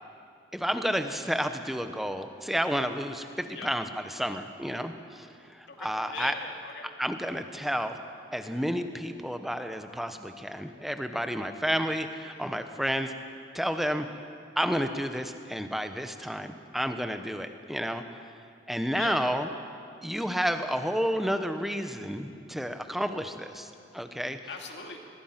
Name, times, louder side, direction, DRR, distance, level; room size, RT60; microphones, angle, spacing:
voice 1, 0.5-6.3 7.0-8.0 8.3-13.1 13.5-14.1 14.6-18.0 18.7-19.5 20.0-24.4, equal, ahead, 7 dB, 0.9 m, -31 dB
voice 2, 5.7-6.9 12.3-12.9 18.9-19.2 24.5-25.0, left 5 dB, 75° left, 2 dB, 2.5 m, -41 dB
23.0 x 21.0 x 5.9 m, 2.5 s
head